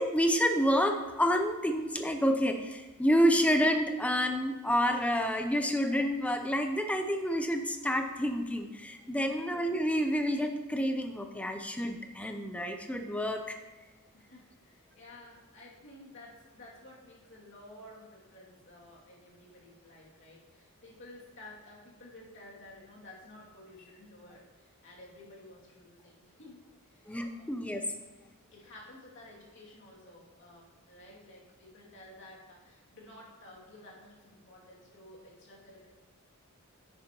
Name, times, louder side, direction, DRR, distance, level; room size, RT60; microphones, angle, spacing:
voice 1, 0.0-13.6 27.1-27.9, equal, 5° left, 5 dB, 0.7 m, -29 dB
voice 2, 9.1-9.5 14.1-27.5 28.5-35.9, left 1 dB, 60° left, -4 dB, 2.6 m, -53 dB
9.9 x 9.6 x 3.0 m, 1.3 s
head